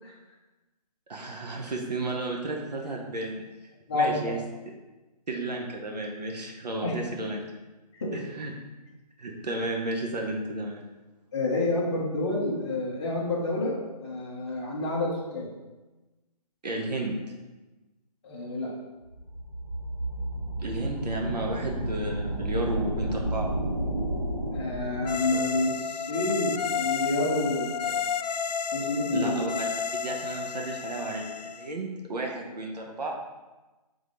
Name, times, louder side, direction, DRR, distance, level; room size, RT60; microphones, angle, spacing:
voice 1, 1.1-3.4 3.9-4.4 5.3-7.4 8.3-8.5 9.2-10.8 16.6-17.2 20.6-23.5 29.1-29.7 30.0-33.1, right 2 dB, 80° right, 0 dB, 1.2 m, -32 dB
voice 2, 3.9-4.3 6.8-7.0 7.9-8.2 11.3-15.5 18.2-18.7 24.5-28.0 28.7-29.4, left 2 dB, 15° left, -10 dB, 0.5 m, -29 dB
sound 1, 19.1-25.6, right 1 dB, 20° right, 1.3 m, -32 dB
sound 2, 25.0-31.7, left 6 dB, 80° left, 0.4 m, -31 dB
5.1 x 3.9 x 5.2 m, 1.1 s
hypercardioid pair, 170°, 21 cm